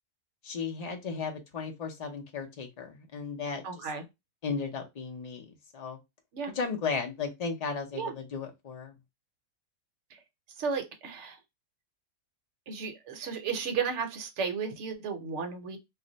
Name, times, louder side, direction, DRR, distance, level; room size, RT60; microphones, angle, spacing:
voice 1, 0.4-3.9 4.4-6.0 6.6-8.9, left 5 dB, 60° left, 0.4 m, -35 dB
voice 2, 3.6-4.0 6.3-6.5 7.9-8.1 10.1-10.2 10.6-11.4 12.7-15.8, right 5 dB, 60° right, 0.9 m, -34 dB
2.5 x 2.1 x 3.8 m
omnidirectional pair, 1.5 m